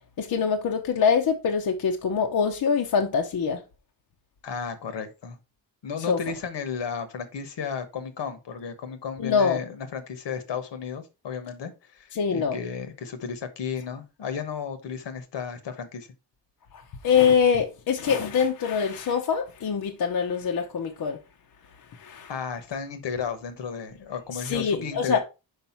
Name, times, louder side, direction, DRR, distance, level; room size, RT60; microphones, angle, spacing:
voice 1, 0.2-3.6 6.1-6.3 9.2-9.6 12.1-12.6 16.7-21.2 21.9-22.3 24.3-25.2, left 6 dB, 50° left, 0.8 m, -24 dB
voice 2, 4.4-5.4 5.8-16.1 22.3-25.2, left 6 dB, 65° left, 1.2 m, -34 dB
5.6 x 5.1 x 4.4 m
wide cardioid pair, 160°, 46 cm